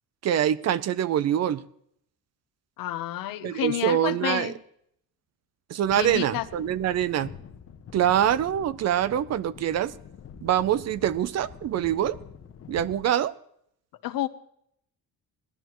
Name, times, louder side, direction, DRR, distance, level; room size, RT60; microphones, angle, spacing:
voice 1, 0.2-1.6 3.4-4.5 5.7-7.3 7.9-9.9 10.4-12.2 12.7-13.3, right 10 dB, 50° right, 18 dB, 0.5 m, -24 dB
voice 2, 2.8-4.6 5.9-6.5 14.0-14.3, left 14 dB, 75° left, 12 dB, 0.9 m, -30 dB
sound 1, 5.8-13.1, left 7 dB, 40° left, 1.0 m, -45 dB
19.0 x 12.5 x 3.1 m, 0.70 s
cardioid pair, 135°, 34 cm